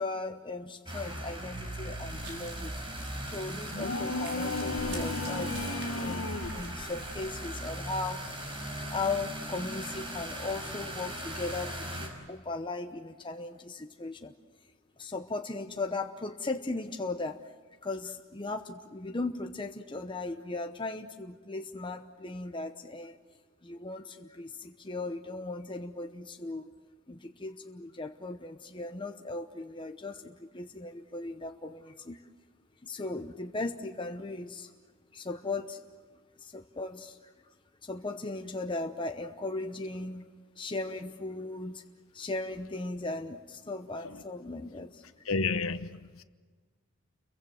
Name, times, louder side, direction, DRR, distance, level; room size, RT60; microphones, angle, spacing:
voice 1, 0.0-2.7 3.2-8.6 8.9-14.3 15.0-17.4 17.8-23.2 23.6-26.7 27.1-32.2 32.8-34.7 35.1-35.8 36.4-37.2 37.8-40.3 40.6-41.8 42.1-45.0, left 3 dB, 25° left, 0.9 m, -37 dB
sound 1, 0.9-12.1, right 1 dB, 25° right, 5.3 m, -38 dB
sound 2, 2.1-7.4, right 2 dB, 55° right, 5.5 m, -47 dB
sound 3, 3.7-6.7, left 2 dB, 70° left, 1.4 m, -34 dB
voice 2, 45.2-46.2, left 4 dB, 90° left, 1.1 m, -31 dB
30.0 x 23.0 x 7.8 m
head